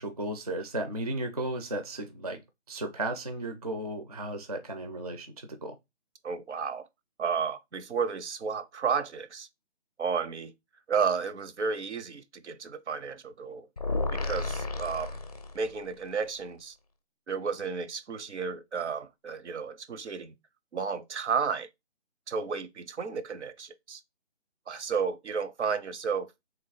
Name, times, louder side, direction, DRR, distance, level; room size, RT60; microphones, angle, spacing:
voice 1, 0.0-2.4 2.7-5.8, right 1 dB, 35° right, 0.4 m, -34 dB
voice 2, 6.2-6.9 7.2-9.5 10.0-10.5 10.9-13.7 14.1-15.2 15.5-16.7 17.3-20.3 20.7-21.7 22.3-24.0 24.7-26.3, right 6 dB, 75° right, 0.7 m, -32 dB
sound 1, 13.8-15.9, left 3 dB, 35° left, 0.4 m, -32 dB
3.3 x 3.0 x 3.9 m
figure-of-eight pair, 160°, 35 cm